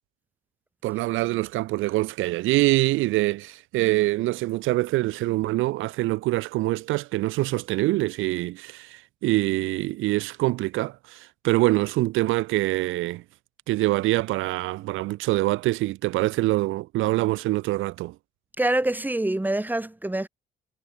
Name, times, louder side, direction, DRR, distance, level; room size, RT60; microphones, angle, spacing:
voice 1, 0.8-13.2 13.7-18.1, right 18 dB, 85° right, 0.4 m, -25 dB
voice 2, 18.6-20.3, right 1 dB, 10° right, 2.1 m, -25 dB
cardioid pair, 90°, 20 cm